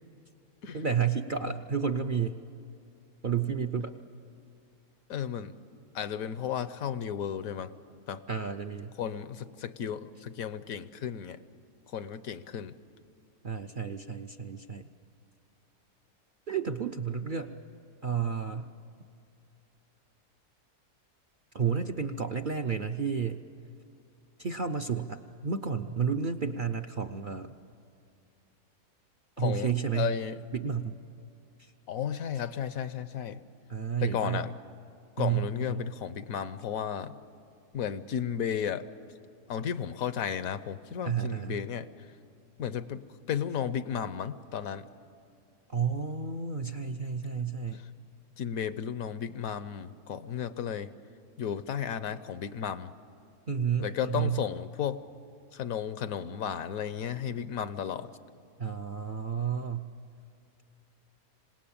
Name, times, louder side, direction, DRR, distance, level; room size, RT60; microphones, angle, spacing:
voice 1, 0.7-2.4 3.2-4.0 8.3-8.9 13.4-14.8 16.5-17.5 18.0-18.7 21.5-23.4 24.4-27.5 29.4-30.1 30.5-31.0 31.6-31.7 33.7-34.4 35.2-35.9 41.0-41.6 45.7-47.8 53.5-54.4 58.6-59.9, right 6 dB, 50° right, 5 dB, 0.6 m, -31 dB
voice 2, 5.1-5.5 5.9-7.7 8.1-8.2 9.0-11.4 11.9-12.7 29.4-30.4 31.9-33.4 34.0-34.5 35.2-37.1 37.7-38.9 39.5-41.9 42.6-44.8 48.4-50.9 51.4-52.9 53.8-55.0 55.5-58.1, left 8 dB, 75° left, 13 dB, 1.2 m, -34 dB
26.5 x 18.5 x 8.7 m, 2.5 s
omnidirectional pair, 1.5 m